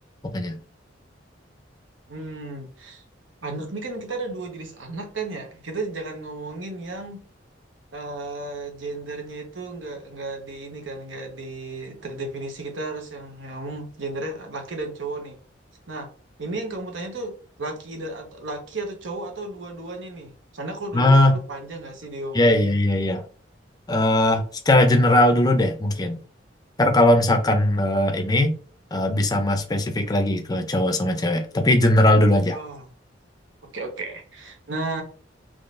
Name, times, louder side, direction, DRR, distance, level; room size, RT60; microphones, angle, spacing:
voice 1, 2.1-3.0 3.4-7.2 7.9-15.4 15.9-16.1 16.4-22.7 32.5-32.9 33.7-35.0, right 2 dB, 80° right, 3 dB, 1.0 m, -34 dB
voice 2, 20.9-21.4 22.3-23.2 23.9-26.2 26.8-28.5 28.9-32.6, left 1 dB, 20° left, 5 dB, 0.5 m, -19 dB
3.8 x 3.1 x 2.6 m, 0.41 s
head